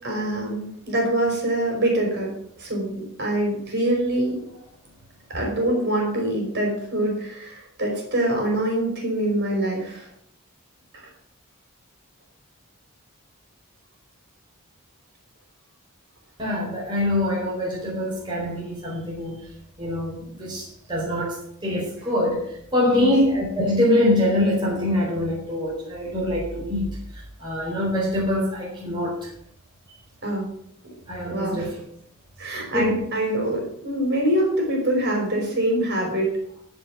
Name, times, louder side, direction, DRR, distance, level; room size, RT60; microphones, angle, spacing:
voice 1, 0.0-2.3 2.6-4.4 5.3-10.1 22.9-23.1 30.2-30.5 31.3-31.7 32.4-36.3, right 1 dB, 50° right, -1 dB, 5.3 m, -24 dB
voice 2, 16.4-19.4 19.8-21.4 21.6-29.3 31.1-31.7 32.6-33.0, left 1 dB, 20° right, -5 dB, 4.3 m, -24 dB
14.5 x 6.0 x 7.5 m, 0.70 s
head